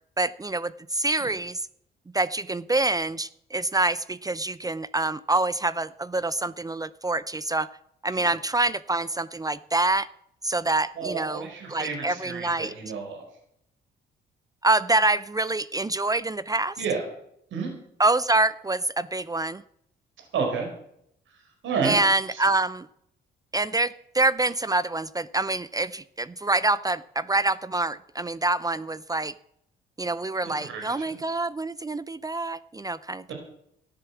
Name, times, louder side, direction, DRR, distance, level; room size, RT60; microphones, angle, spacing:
voice 1, 0.2-1.6 2.1-7.7 8.0-10.1 10.4-12.7 14.6-16.8 18.0-19.6 21.8-22.9 23.5-29.3 30.0-33.3, right 2 dB, 20° right, 17 dB, 0.6 m, -26 dB
voice 2, 11.0-13.2 16.8-17.0 17.5-17.7 20.3-20.7 21.6-21.9 22.3-22.4 30.4-31.2 33.3-33.4, right 5 dB, 75° right, 3 dB, 4.7 m, -31 dB
14.0 x 10.5 x 7.1 m, 0.72 s
cardioid pair, 90°, 20 cm